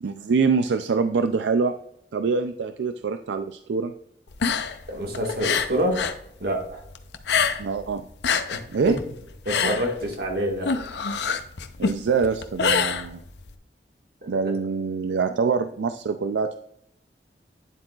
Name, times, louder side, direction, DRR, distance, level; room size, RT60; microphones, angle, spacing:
voice 1, 0.0-1.7 2.1-3.9 7.6-8.0 8.7-8.9 11.8-13.2 14.3-16.6, right 5 dB, 85° right, 8 dB, 0.4 m, -24 dB
sound 1, 4.3-6.2 6.5-7.8 8.1-13.5, left 6 dB, 75° left, 0.6 m, -26 dB
voice 2, 4.9-6.0 6.4-6.9 8.5-8.6 8.9-9.0 9.5-10.7 14.2-14.3, equal, 60° right, 1 dB, 1.8 m, -26 dB
10.0 x 7.6 x 2.4 m, 0.76 s
head